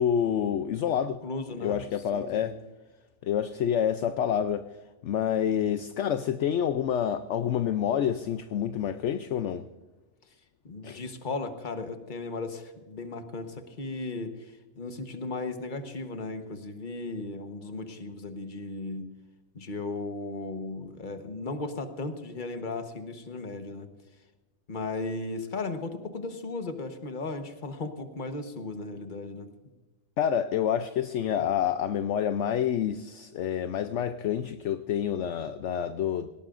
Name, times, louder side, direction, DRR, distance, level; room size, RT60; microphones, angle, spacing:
voice 1, 0.0-1.2 1.6-2.6 3.2-4.7 5.0-9.7 10.8-11.0 30.2-36.3, left 9 dB, 65° left, 0.9 m, -28 dB
voice 2, 1.2-1.9 2.1-2.5 10.6-19.1 19.5-23.9 24.7-29.5, left 3 dB, 40° left, 1.3 m, -36 dB
18.5 x 17.5 x 2.5 m
omnidirectional pair, 1.4 m